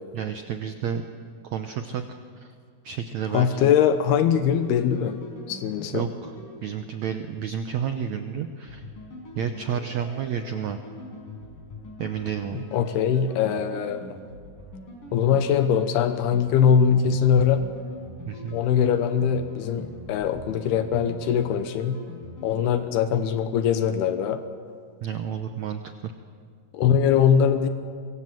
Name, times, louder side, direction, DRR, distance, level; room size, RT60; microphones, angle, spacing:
voice 1, 0.1-1.0 1.4-2.5 2.8-3.7 5.9-6.3 6.6-8.8 9.3-10.8 12.0-12.6 18.3-18.6 25.0-26.1, right 8 dB, 80° right, 7 dB, 1.6 m, -31 dB
voice 2, 3.3-5.2 5.5-6.1 12.5-14.2 15.1-17.6 18.5-22.0 22.4-24.4 26.7-27.7, left 8 dB, 85° left, 9 dB, 3.0 m, -22 dB
sound 1, 4.1-7.4 8.7-22.6, left 1 dB, 55° left, 6.4 m, -43 dB
24.0 x 24.0 x 7.7 m, 2.1 s
omnidirectional pair, 4.5 m